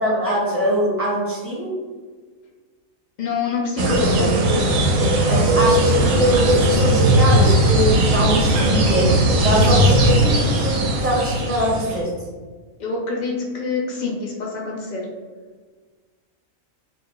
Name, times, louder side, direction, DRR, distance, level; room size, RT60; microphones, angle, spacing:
voice 1, 0.0-1.8 5.3-12.1, right 1 dB, 10° right, -6 dB, 0.8 m, -22 dB
voice 2, 3.2-4.4 12.8-15.0, left 4 dB, 75° left, -2 dB, 0.4 m, -26 dB
sound 1, 3.8-12.0, right 1 dB, 80° right, 1.0 m, -18 dB
2.5 x 2.4 x 3.7 m, 1.4 s
omnidirectional pair, 1.4 m